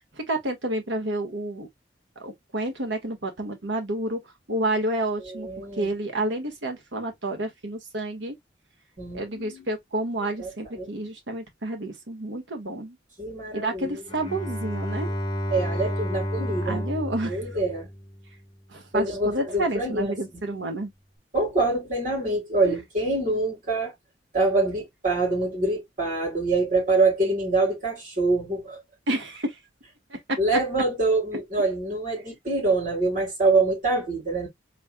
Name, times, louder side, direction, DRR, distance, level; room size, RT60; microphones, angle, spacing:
voice 1, 0.2-1.7 2.2-4.2 4.5-5.5 5.8-8.3 9.1-13.0 13.5-15.1 16.6-17.4 18.7-20.9 22.6-22.7 29.1-29.6 30.1-30.4, right 1 dB, 75° right, 1.4 m, -29 dB
voice 2, 5.3-5.9 9.0-9.7 10.4-10.9 13.2-14.0 15.5-16.8 17.2-17.9 18.9-20.4 21.3-23.9 24.3-28.8 30.4-34.5, right 2 dB, 45° right, 3.2 m, -25 dB
Bowed string instrument, 14.1-18.4, equal, 20° left, 1.1 m, -31 dB
4.4 x 3.2 x 2.2 m
head